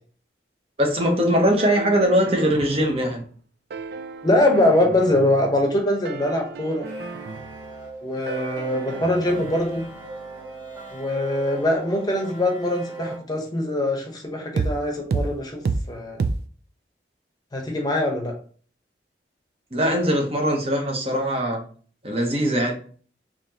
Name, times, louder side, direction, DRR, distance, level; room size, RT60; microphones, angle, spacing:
voice 1, 0.8-3.2 19.7-21.6 22.0-22.7, equal, 35° right, 1 dB, 0.8 m, -21 dB
sound 1, 1.6-3.3 3.7-5.8 6.0-8.0 8.3-12.0 14.6-14.8 15.1-15.3 15.7-15.9 16.2-16.4, right 4 dB, 60° right, 0.3 m, -32 dB
voice 2, 4.2-6.8 8.0-9.8 10.9-15.6 15.9-16.2 17.5-18.3, left 1 dB, 20° left, 1 dB, 0.8 m, -22 dB
sound 2, 6.7-13.2, right 2 dB, 15° right, 1.8 m, -38 dB
4.1 x 3.0 x 2.8 m, 0.44 s
head